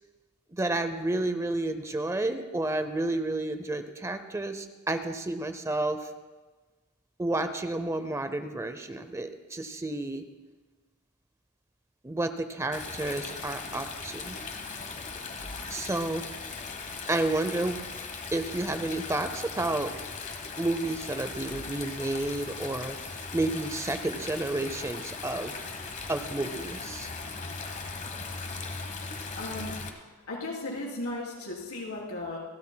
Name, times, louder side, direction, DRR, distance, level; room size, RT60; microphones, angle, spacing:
voice 1, 0.5-6.1 7.2-10.2 12.0-14.4 15.7-16.3 17.1-17.8 18.3-19.9 20.6-23.0 23.3-25.6 26.1-27.1, right 2 dB, 15° right, 9 dB, 0.6 m, -31 dB
Stream, 12.7-29.9, left 4 dB, 35° left, 1.2 m, -39 dB
voice 2, 29.4-29.7 30.3-32.4, left 2 dB, 80° left, -3 dB, 3.8 m, -35 dB
28.0 x 12.5 x 2.3 m, 1.3 s
head